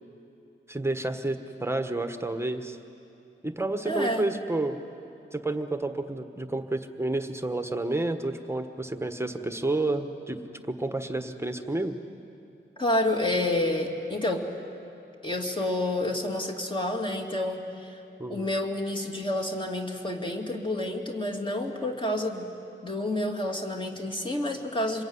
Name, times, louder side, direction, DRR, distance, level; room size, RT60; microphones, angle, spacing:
voice 1, 0.7-2.8 3.4-4.8 5.3-10.4 10.7-12.0 18.2-18.5, right 2 dB, 10° right, 8 dB, 1.3 m, -30 dB
voice 2, 3.9-4.3 12.8-14.5 15.2-18.0 18.3-22.5 22.8-25.0, left 1 dB, 25° left, 2 dB, 2.5 m, -29 dB
26.5 x 21.5 x 9.7 m, 2.8 s
wide cardioid pair, 120°, 21 cm